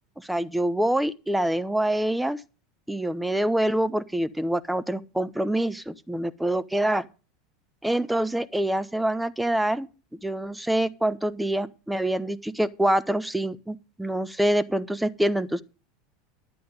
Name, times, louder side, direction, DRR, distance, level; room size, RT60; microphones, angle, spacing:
voice 1, 0.2-2.4 2.9-7.1 7.8-9.9 10.2-15.6, right 1 dB, 5° right, 0.7 m, -25 dB
11.0 x 8.6 x 5.2 m
figure-of-eight pair, 80°, 0 cm